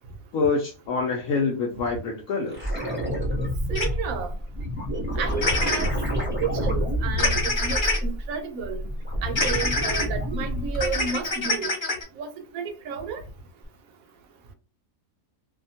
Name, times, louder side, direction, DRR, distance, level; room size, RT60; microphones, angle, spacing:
voice 1, 0.3-2.7, left 4 dB, 70° left, 1.0 m, -26 dB
sound 1, 2.5-8.3 8.7-11.2 13.6-13.7, equal, 15° right, 0.4 m, -28 dB
voice 2, 3.7-4.3 5.2-5.9 6.1-8.9 9.2-11.7 12.2-12.3 12.5-13.2, right 6 dB, 75° right, 1.0 m, -32 dB
sound 2, 3.8-3.9 5.4-5.9 7.2-8.0 9.4-10.0 10.7-12.0, left 2 dB, 35° left, 1.2 m, -25 dB
2.7 x 2.2 x 2.6 m
omnidirectional pair, 1.5 m